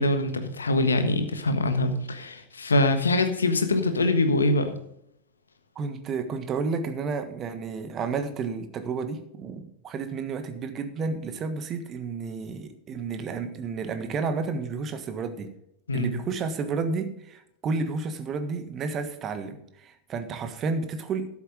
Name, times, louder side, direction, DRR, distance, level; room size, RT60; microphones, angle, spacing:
voice 1, 0.0-4.7 15.9-16.1, left 2 dB, 75° left, 8 dB, 1.4 m, -24 dB
voice 2, 5.7-15.5 15.9-21.3, right 4 dB, 30° right, 8 dB, 1.4 m, -31 dB
12.5 x 7.4 x 5.2 m, 0.76 s
figure-of-eight pair, 90°, 0 cm